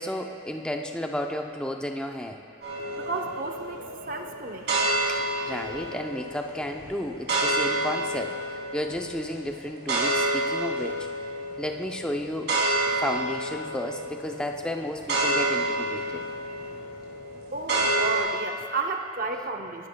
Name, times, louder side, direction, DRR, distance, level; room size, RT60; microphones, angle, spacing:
voice 1, 0.0-2.4 5.1-11.1 11.6-12.5 13.0-16.2, left 1 dB, 5° left, 3 dB, 0.5 m, -33 dB
sound 1, 2.6-18.2, right 1 dB, 60° right, 3.0 m, -29 dB
voice 2, 2.9-4.7 16.6-16.7 17.5-19.9, right 3 dB, 45° right, 4 dB, 0.7 m, -32 dB
22.0 x 11.5 x 2.2 m, 2.5 s
head